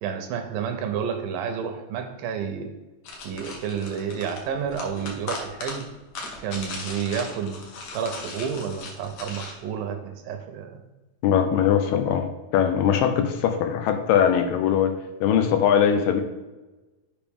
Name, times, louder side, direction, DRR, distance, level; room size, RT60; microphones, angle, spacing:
voice 1, 0.0-2.7 3.2-5.9 6.4-7.6 7.9-10.8, right 7 dB, 80° right, 6 dB, 2.2 m, -30 dB
sound 1, 3.0-9.5, left 3 dB, 60° left, 2.1 m, -38 dB
voice 2, 11.2-12.3 12.5-14.9 15.2-16.2, left 8 dB, 80° left, 6 dB, 2.2 m, -21 dB
7.0 x 5.1 x 3.5 m, 1.1 s
omnidirectional pair, 4.2 m